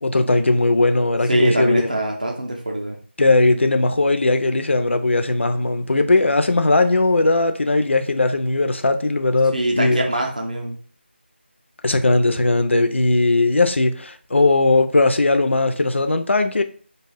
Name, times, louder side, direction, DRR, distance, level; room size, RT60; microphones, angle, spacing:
voice 1, 0.0-1.9 3.2-10.0 11.8-16.6, left 2 dB, 80° left, 0.4 m, -18 dB
voice 2, 1.3-3.0 9.5-10.8, right 1 dB, 40° right, 0.5 m, -23 dB
2.3 x 2.1 x 3.3 m
figure-of-eight pair, 180°, 6 cm